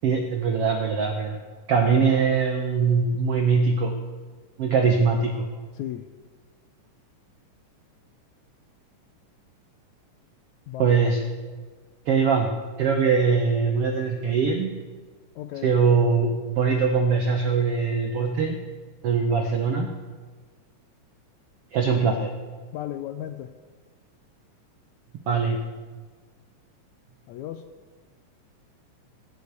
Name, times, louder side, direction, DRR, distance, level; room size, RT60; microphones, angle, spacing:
voice 1, 0.0-1.4 1.7-3.9 4.6-5.5 10.8-11.2 12.1-14.7 15.6-18.6 19.0-19.9 21.7-22.3 25.3-25.6, right 5 dB, 80° right, 4 dB, 1.3 m, -22 dB
voice 2, 5.7-6.1 10.7-11.1 15.4-15.7 22.7-23.5 27.3-27.7, left 11 dB, 80° left, 9 dB, 1.7 m, -35 dB
16.5 x 7.0 x 8.1 m, 1.4 s
omnidirectional pair, 3.8 m